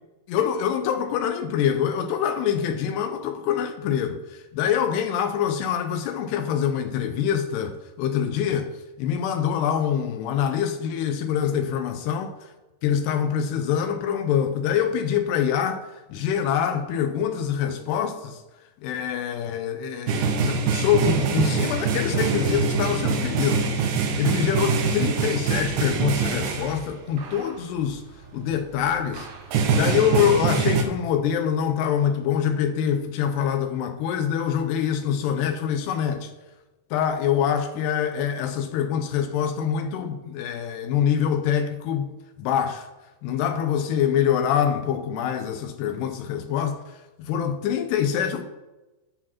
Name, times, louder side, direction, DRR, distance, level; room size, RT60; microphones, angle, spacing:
voice 1, 0.3-8.7 9.0-12.3 12.8-18.4 18.8-23.7 24.2-28.0 28.3-29.3 29.7-36.3 36.9-42.1 42.4-42.9 43.2-48.4, left 8 dB, 85° left, 7 dB, 2.6 m, -25 dB
sound 1, 20.1-26.9 27.2-27.5 28.3-28.4 28.8-28.9 29.1-30.8, right 5 dB, 75° right, 3.0 m, -24 dB
11.0 x 4.9 x 5.8 m, 1.1 s
omnidirectional pair, 5.0 m